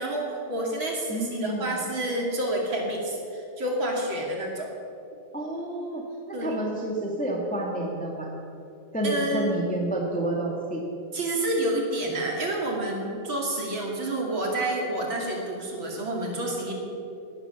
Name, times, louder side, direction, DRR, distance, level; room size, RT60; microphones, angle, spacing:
voice 1, 0.0-4.7 6.3-6.6 9.0-9.7 11.1-16.7, right 1 dB, 35° right, -1 dB, 2.7 m, -29 dB
voice 2, 1.1-1.8 5.3-8.3 8.9-10.8, right 1 dB, 5° left, -2 dB, 0.8 m, -29 dB
18.5 x 11.0 x 7.0 m, 2.8 s
omnidirectional pair, 4.3 m